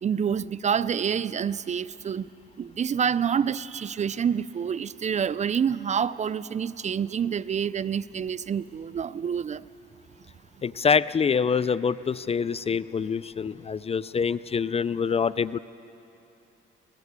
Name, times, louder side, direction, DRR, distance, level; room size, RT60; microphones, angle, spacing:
voice 1, 0.0-2.3 2.6-9.6, right 7 dB, 35° right, 17 dB, 0.4 m, -27 dB
voice 2, 10.6-15.6, left 6 dB, 30° left, 18 dB, 0.4 m, -25 dB
25.0 x 17.0 x 8.1 m, 2.9 s
cardioid pair, 90°, 20 cm